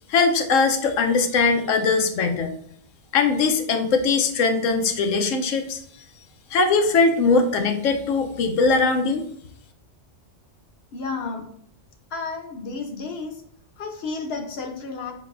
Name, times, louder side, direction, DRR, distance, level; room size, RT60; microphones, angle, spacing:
voice 1, 0.1-2.5 3.1-5.8 6.5-9.3, left 4 dB, 90° left, 5 dB, 1.0 m, -20 dB
voice 2, 10.9-11.5 12.1-13.4 13.8-15.1, left 4 dB, 60° left, 4 dB, 0.9 m, -32 dB
5.5 x 3.9 x 2.5 m, 0.65 s
omnidirectional pair, 1.3 m